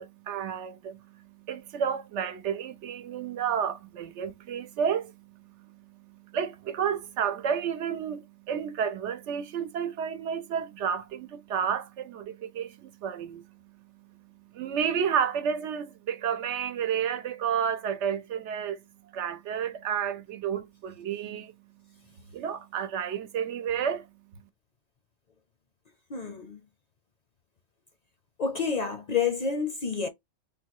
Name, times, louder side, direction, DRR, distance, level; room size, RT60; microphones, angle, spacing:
voice 1, 0.0-18.8 19.1-21.5 22.3-24.1, right 8 dB, 85° right, 1.0 m, -31 dB
voice 2, 26.1-26.6 28.4-30.1, left 6 dB, 50° left, 0.5 m, -29 dB
3.7 x 2.3 x 2.9 m
omnidirectional pair, 1.2 m